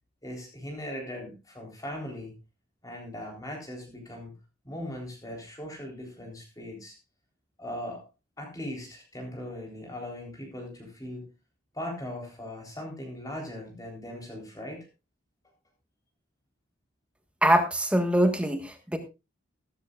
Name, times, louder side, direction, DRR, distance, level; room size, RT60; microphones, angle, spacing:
voice 1, 0.2-2.3 2.8-4.3 4.6-7.0 7.6-8.0 8.4-11.3 11.7-14.9, left 1 dB, 20° left, 0 dB, 3.8 m, -39 dB
voice 2, 17.4-19.0, right 1 dB, 5° right, 7 dB, 1.4 m, -23 dB
15.0 x 13.5 x 2.4 m, 0.26 s
head